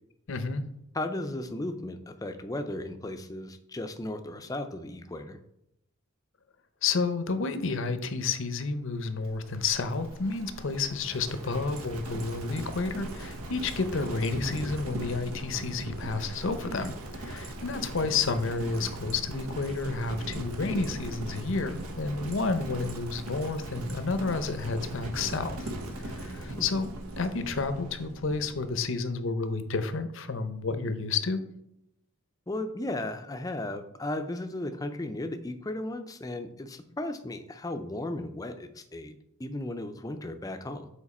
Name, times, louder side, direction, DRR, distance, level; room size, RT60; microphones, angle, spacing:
voice 1, 0.3-0.6 6.8-25.7 26.0-26.9 27.2-31.4, left 4 dB, 60° left, 10 dB, 0.6 m, -30 dB
voice 2, 0.9-5.4 26.5-26.7 32.5-40.9, left 1 dB, 15° left, 8 dB, 0.4 m, -35 dB
Livestock farm animals working animals, 9.2-28.9, right 1 dB, 90° right, 1.1 m, -39 dB
7.2 x 4.4 x 4.2 m, 0.79 s
head